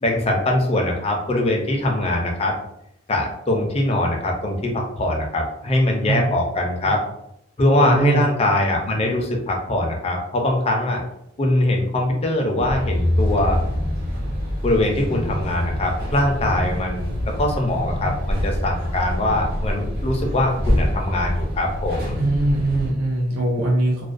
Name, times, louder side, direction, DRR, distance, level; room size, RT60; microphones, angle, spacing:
voice 1, 0.0-2.5 3.1-7.0 7.6-11.0 11.4-13.6 14.6-17.1 17.4-22.2, left 1 dB, 30° left, 1 dB, 0.4 m, -22 dB
voice 2, 7.8-8.2 22.2-24.0, right 1 dB, 80° right, -2 dB, 0.5 m, -21 dB
sound 1, 12.6-22.9, equal, 50° right, 0.8 m, -25 dB
2.3 x 2.1 x 2.5 m, 0.78 s
head